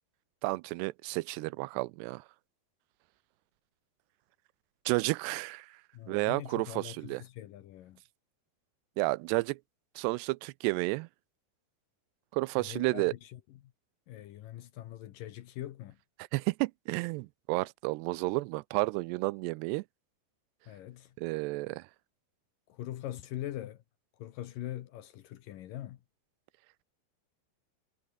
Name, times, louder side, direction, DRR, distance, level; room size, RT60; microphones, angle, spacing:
voice 1, 0.4-2.2 4.9-5.7 6.1-7.2 9.0-9.6 10.0-11.1 12.3-13.1 16.3-19.8 21.2-21.8, right 23 dB, 85° right, 2.6 m, -31 dB
voice 2, 5.9-8.0 12.6-13.7 14.1-16.0 20.7-21.1 22.7-23.8 24.2-26.0, left 13 dB, 70° left, 2.4 m, -42 dB
omnidirectional pair, 4.8 m